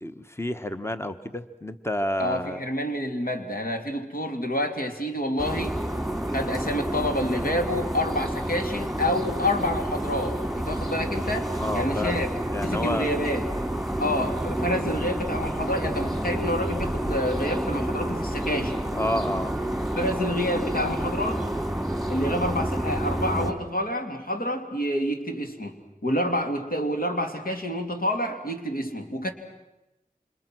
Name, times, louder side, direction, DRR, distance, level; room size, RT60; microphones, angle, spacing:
voice 1, 0.0-2.6 11.5-12.2 12.5-13.1 14.0-14.2 18.9-19.5, left 1 dB, 15° left, 10 dB, 1.2 m, -30 dB
voice 2, 2.2-5.8 6.3-12.3 12.6-13.5 14.0-18.8 20.0-21.4 22.1-25.8 26.0-29.3, left 1 dB, 85° left, 4 dB, 2.8 m, -28 dB
sound 1, 5.4-23.5, right 1 dB, ahead, 3.5 m, -29 dB
29.5 x 26.5 x 6.2 m, 0.97 s
wide cardioid pair, 50°, 15 cm